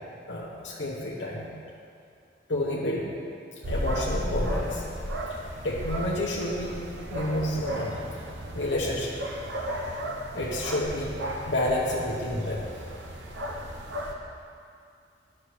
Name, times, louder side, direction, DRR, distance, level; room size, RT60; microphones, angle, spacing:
voice 1, 0.3-1.4 2.5-3.1 3.6-4.8 5.6-6.8 7.1-8.0 8.5-9.1 10.3-11.1 11.5-12.6, left 1 dB, 85° left, -5 dB, 0.9 m, -29 dB
sound 1, 3.6-14.1, equal, 85° right, 0.8 m, -34 dB
10.0 x 6.4 x 3.2 m, 2.4 s
head